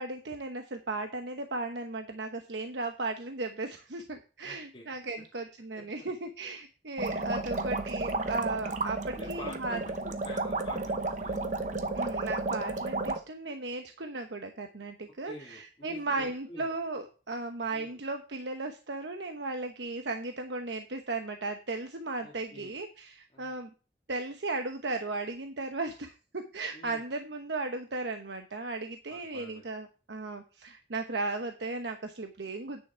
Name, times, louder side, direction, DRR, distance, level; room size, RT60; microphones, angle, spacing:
voice 1, 0.0-9.8 11.9-23.7 24.1-32.8, right 3 dB, 75° right, 6 dB, 1.0 m, -36 dB
voice 2, 4.4-4.9 5.8-5.9 7.4-7.7 9.2-11.5 11.8-12.0 15.2-16.7 17.7-18.0 22.2-22.8 23.3-23.6 26.7-27.0 29.1-29.6, left 1 dB, 30° left, -4 dB, 2.2 m, -48 dB
sound 1, 7.0-13.2, right 2 dB, 40° right, 0.9 m, -32 dB
9.4 x 6.7 x 5.6 m, 0.34 s
head